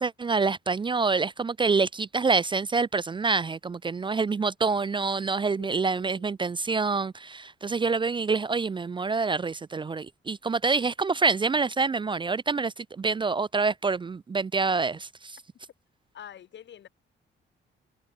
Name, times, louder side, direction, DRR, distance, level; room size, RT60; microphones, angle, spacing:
voice 1, 0.0-15.1, right 4 dB, 25° right, 0.5 m, -26 dB
voice 2, 5.6-6.3 16.1-16.9, left 10 dB, 65° left, 4.5 m, -46 dB
cardioid pair, 90°, 20 cm